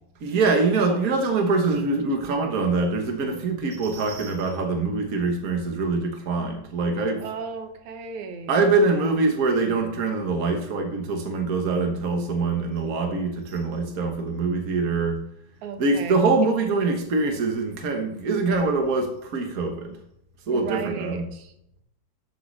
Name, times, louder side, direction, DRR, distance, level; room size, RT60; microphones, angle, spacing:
voice 1, 0.2-7.2 8.5-15.2 15.8-20.0 20.5-21.3, right 3 dB, 55° right, 3 dB, 1.0 m, -24 dB
voice 2, 7.2-8.6 9.0-9.1 15.6-16.2 20.5-21.5, right 5 dB, 80° right, 6 dB, 2.6 m, -35 dB
12.5 x 8.0 x 3.3 m, 0.79 s
omnidirectional pair, 3.4 m